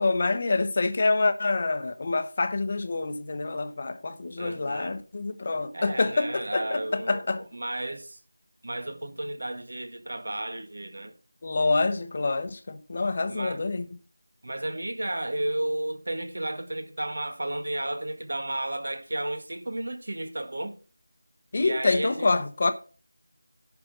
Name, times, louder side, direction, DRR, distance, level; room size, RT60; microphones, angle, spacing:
voice 1, 0.0-7.4 11.4-13.8 21.5-22.7, left 3 dB, 30° left, 1.0 m, -26 dB
voice 2, 4.4-5.0 5.7-8.2 8.6-11.1 13.3-13.6 14.4-20.8 21.6-22.4, right 1 dB, 60° right, 1.7 m, -33 dB
11.0 x 6.0 x 5.3 m
figure-of-eight pair, 175°, 0 cm